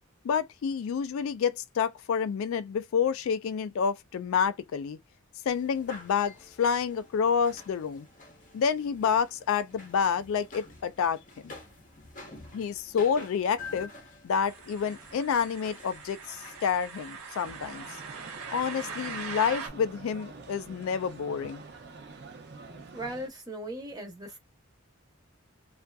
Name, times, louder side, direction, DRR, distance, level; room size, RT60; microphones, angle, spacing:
voice 1, 0.2-5.0 5.5-8.1 8.5-11.5 12.5-13.9 14.2-17.9 18.5-21.6, left 7 dB, 70° left, 0.3 m, -29 dB
sound 1, 5.5-17.1, left 3 dB, 40° left, 0.7 m, -49 dB
sound 2, 14.5-19.7, right 5 dB, 85° right, 0.9 m, -41 dB
sound 3, 17.4-23.3, right 3 dB, 50° right, 0.6 m, -46 dB
voice 2, 22.9-24.4, right 1 dB, 20° right, 0.8 m, -38 dB
2.6 x 2.4 x 2.2 m
head